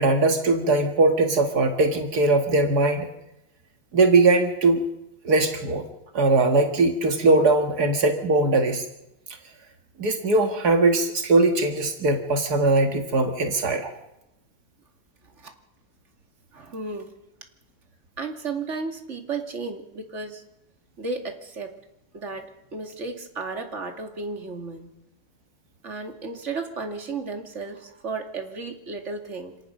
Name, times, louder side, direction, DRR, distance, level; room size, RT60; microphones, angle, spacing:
voice 1, 0.0-3.1 3.9-4.8 5.2-5.8 6.1-8.9 10.0-13.9, right 2 dB, 85° right, 5 dB, 2.3 m, -20 dB
voice 2, 16.5-17.1 18.2-20.4 21.0-21.8 22.1-24.9 25.8-29.6, right 4 dB, 50° right, 4 dB, 2.7 m, -34 dB
27.5 x 18.0 x 6.5 m, 0.88 s
omnidirectional pair, 1.6 m